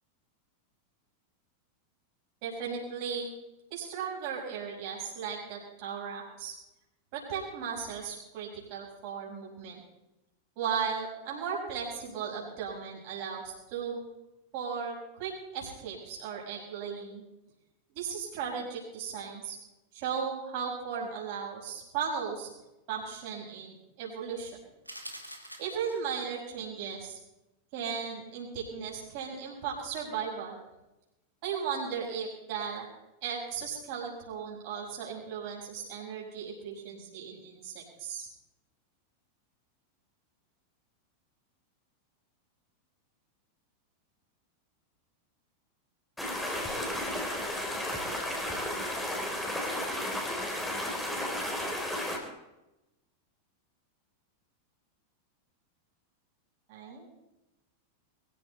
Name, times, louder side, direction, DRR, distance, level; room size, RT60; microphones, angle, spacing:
voice 1, 2.4-3.3 3.7-6.5 7.1-9.8 10.6-14.0 14.5-17.2 17.9-19.6 19.9-22.5 22.9-24.5 25.6-27.2 27.7-30.6 31.4-32.9 33.2-38.3 56.7-57.1, right 6 dB, 45° right, -3 dB, 6.1 m, -36 dB
sound 1, 24.9-26.3, right 1 dB, 85° right, 2.4 m, -45 dB
sound 2, 46.2-52.2, left 1 dB, 5° left, 3.7 m, -33 dB
23.0 x 14.0 x 4.1 m, 0.96 s
figure-of-eight pair, 90°, 0 cm